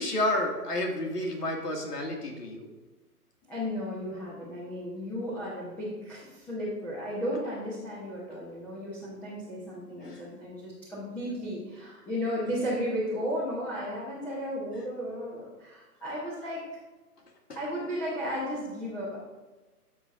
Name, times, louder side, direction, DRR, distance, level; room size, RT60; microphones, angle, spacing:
voice 1, 0.0-2.7 10.0-10.2 17.5-17.6, left 1 dB, 85° left, 1 dB, 2.3 m, -30 dB
voice 2, 3.5-16.7 17.5-19.2, equal, 5° left, -9 dB, 0.9 m, -34 dB
12.5 x 5.9 x 2.5 m, 1.2 s
hypercardioid pair, 145°, 46 cm